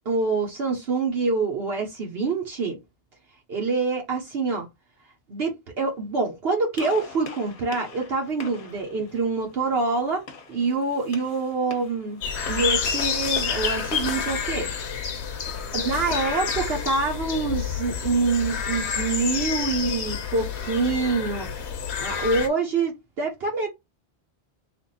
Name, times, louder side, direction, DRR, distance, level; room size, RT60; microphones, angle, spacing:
voice 1, 0.0-2.8 3.5-4.7 5.3-12.2 12.5-14.7 15.7-21.5 22.0-23.7, right 4 dB, 65° right, 1.1 m, -26 dB
Gunshot gunfire, 6.7-12.8, left 4 dB, 55° left, 0.9 m, -44 dB
sound 1, 12.2-22.5, left 7 dB, 75° left, 1.0 m, -29 dB
3.4 x 2.5 x 3.9 m
omnidirectional pair, 1.1 m